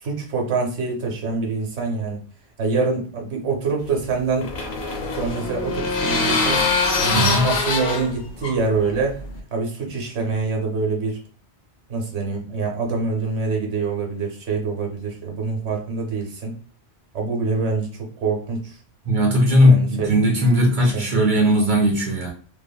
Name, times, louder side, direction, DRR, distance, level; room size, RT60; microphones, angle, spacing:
voice 1, 0.0-2.2 2.6-4.5 5.2-6.7 7.0-9.2 9.5-11.2 11.9-16.6 17.1-18.8 19.7-20.1 20.9-21.2, right 4 dB, 85° right, 1.1 m, -25 dB
sound 1, 3.9-9.4, left 3 dB, 75° left, 0.9 m, -24 dB
voice 2, 7.1-7.5 19.1-22.3, equal, 50° right, 0.9 m, -17 dB
2.8 x 2.5 x 2.2 m
omnidirectional pair, 1.1 m